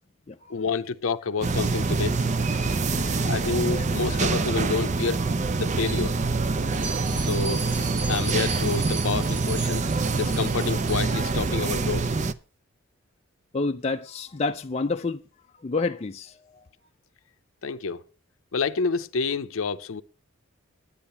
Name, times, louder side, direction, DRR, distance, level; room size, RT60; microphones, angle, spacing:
voice 1, 0.5-2.2 3.2-5.2 5.6-6.2 7.2-7.7 8.1-9.9 10.2-12.1 17.6-18.0 18.5-20.0, left 5 dB, 80° left, 0.6 m, -28 dB
sound 1, 1.4-12.3, right 3 dB, 35° right, 0.5 m, -25 dB
voice 2, 2.5-3.5 4.1-4.2 13.5-15.2 15.6-16.7, left 3 dB, 30° left, 0.4 m, -30 dB
Bell, 6.7-11.3, right 4 dB, 60° right, 2.8 m, -37 dB
10.5 x 10.0 x 5.5 m
head